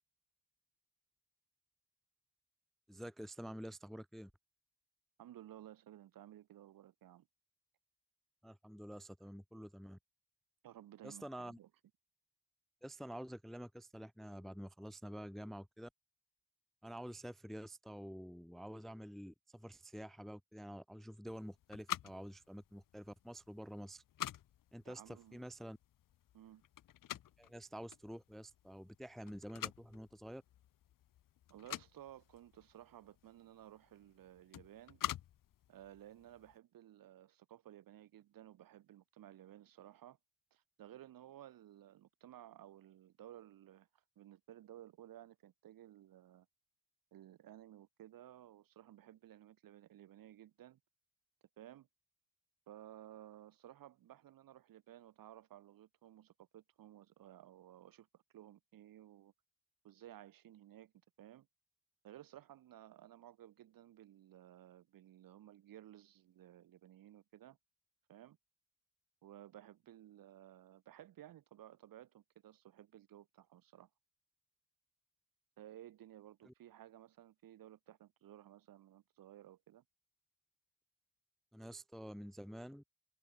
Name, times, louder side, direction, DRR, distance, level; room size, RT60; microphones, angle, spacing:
voice 1, 2.9-4.3 8.4-10.0 11.0-11.6 12.8-15.9 16.8-24.0 24.7-25.8 27.4-30.4 76.4-76.5 81.5-82.8, equal, ahead, 0.7 m, -49 dB
voice 2, 5.2-7.3 10.6-11.7 24.8-25.4 26.3-26.6 31.5-35.0 35.7-40.2 40.5-46.5 47.1-50.8 51.6-51.9 52.7-59.3 59.8-60.9 61.2-61.5 62.0-67.6 68.1-68.4 69.2-73.9 75.6-79.8, right 12 dB, 65° right, 1.6 m, -57 dB
sound 1, 21.3-36.5, left 12 dB, 60° left, 1.2 m, -48 dB
cardioid pair, 80°, 36 cm